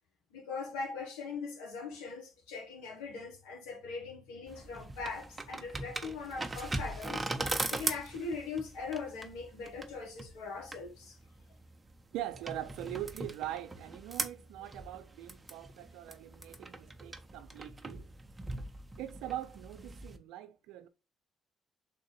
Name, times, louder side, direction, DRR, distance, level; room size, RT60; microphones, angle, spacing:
voice 1, 0.3-7.2 7.7-11.2, left 4 dB, 85° left, 1.2 m, -41 dB
sound 1, 4.5-20.2, right 2 dB, 25° right, 0.8 m, -40 dB
voice 2, 12.1-18.1 19.0-20.9, right 13 dB, 80° right, 0.4 m, -42 dB
3.7 x 2.6 x 4.0 m
hypercardioid pair, 50°, 0 cm